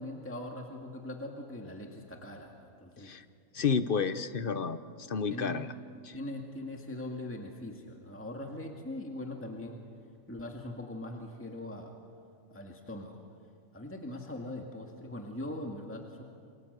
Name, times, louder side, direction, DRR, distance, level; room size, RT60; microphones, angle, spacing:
voice 1, 0.0-3.1 5.3-5.6 6.1-9.8 10.3-12.0 12.5-13.2 13.7-16.2, left 1 dB, 10° left, 1 dB, 2.0 m, -41 dB
voice 2, 3.5-5.7 6.1-6.2, left 6 dB, 45° left, 12 dB, 1.0 m, -31 dB
29.0 x 24.0 x 8.1 m, 2.3 s
omnidirectional pair, 1.4 m